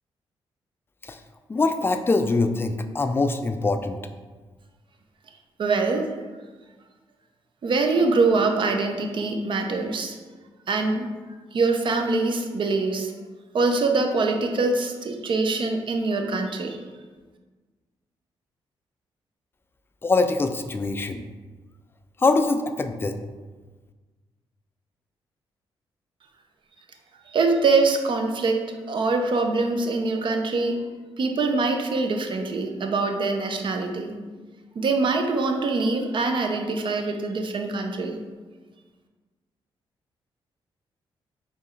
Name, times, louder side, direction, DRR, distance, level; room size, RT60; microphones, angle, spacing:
voice 1, 1.5-4.0 20.0-21.2 22.2-23.1, left 3 dB, 25° left, 8 dB, 0.3 m, -23 dB
voice 2, 5.6-6.1 7.6-10.2 10.7-11.1 11.5-13.1 13.5-16.8 27.3-30.8 31.2-34.2 34.8-38.2, right 3 dB, 55° right, 4 dB, 0.6 m, -24 dB
4.5 x 3.1 x 3.2 m, 1.3 s
cardioid pair, 80°, 10 cm